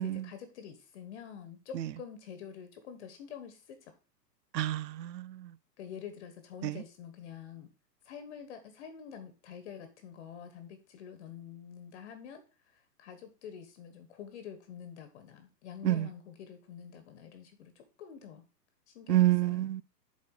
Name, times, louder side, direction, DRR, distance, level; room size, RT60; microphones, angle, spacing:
voice 1, 0.0-3.9 5.8-7.7 8.0-18.4 18.9-19.6, left 8 dB, 40° left, 1.3 m, -47 dB
voice 2, 4.5-5.5 6.6-6.8 15.8-16.1 19.1-19.8, right 14 dB, 75° right, 0.7 m, -28 dB
7.1 x 4.2 x 6.4 m
hypercardioid pair, 140°, 50 cm